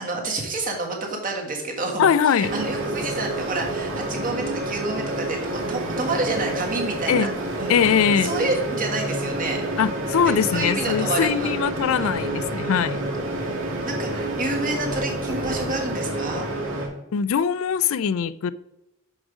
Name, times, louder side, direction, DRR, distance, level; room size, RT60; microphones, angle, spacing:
voice 1, 0.0-7.3 7.6-7.8 8.2-9.8 10.2-11.6 12.0-12.2 13.8-16.5, right 2 dB, 40° right, 1.5 m, -29 dB
voice 2, 2.0-2.5 7.1-7.3 7.7-8.3 9.8-13.0 17.1-18.5, left 7 dB, 75° left, 0.4 m, -21 dB
sound 1, 2.4-16.9, right 1 dB, 75° right, 2.0 m, -28 dB
6.3 x 4.9 x 4.9 m
head